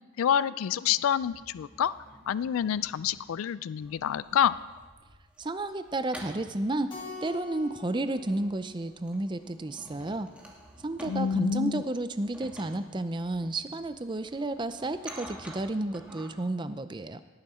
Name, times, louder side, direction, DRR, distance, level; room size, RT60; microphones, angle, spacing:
voice 1, 0.2-1.9 2.3-4.6 11.1-11.8, left 8 dB, 80° left, 17 dB, 0.3 m, -27 dB
sound 1, 1.2-3.3 3.8-16.3, right 1 dB, 5° right, 1.5 m, -50 dB
voice 2, 5.4-6.9 7.2-10.3 10.8-17.2, right 2 dB, 20° right, 11 dB, 0.5 m, -32 dB
Keyboard (musical), 6.9-9.5, left 3 dB, 20° left, 2.0 m, -45 dB
18.0 x 9.8 x 4.3 m, 1.3 s
head